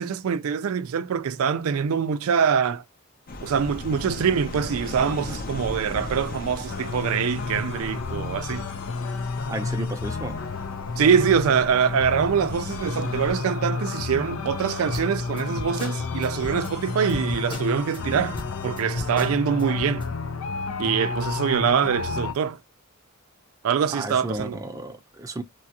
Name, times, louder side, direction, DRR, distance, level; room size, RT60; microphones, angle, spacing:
voice 1, 0.0-2.8 3.4-8.7 11.0-18.4 18.6-20.1 20.8-22.6 23.6-24.6, right 7 dB, 85° right, 0.4 m, -24 dB
sound 1, 3.3-13.3, left 2 dB, 45° left, 0.6 m, -38 dB
sound 2, 6.7-22.3, left 4 dB, 90° left, 0.6 m, -31 dB
voice 2, 9.5-10.4 23.9-25.4, right 1 dB, 15° right, 0.6 m, -33 dB
sound 3, 14.9-18.0 18.3-20.1, left 2 dB, 25° left, 0.9 m, -37 dB
3.0 x 2.3 x 2.8 m
head